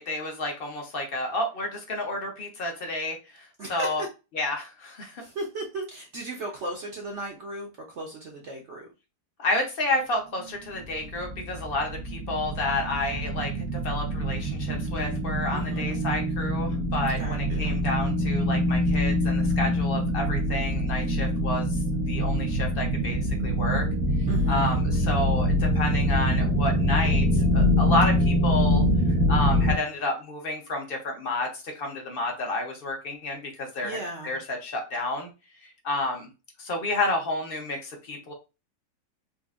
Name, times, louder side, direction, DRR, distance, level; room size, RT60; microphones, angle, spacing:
voice 1, 0.0-4.0 4.3-5.2 9.4-21.8 22.1-23.9 24.5-28.8 29.3-34.0 34.2-35.3 35.6-36.3 36.6-38.3, left 2 dB, 50° left, 3 dB, 0.7 m, -30 dB
voice 2, 3.6-4.1 5.2-7.7 8.0-8.9 15.5-16.0 17.2-17.8 24.3-24.8 33.8-34.3, right 2 dB, 60° right, 0 dB, 0.7 m, -36 dB
sound 1, 10.8-29.7, equal, 85° right, 1.5 m, -25 dB
4.3 x 2.5 x 2.4 m, 0.29 s
omnidirectional pair, 1.9 m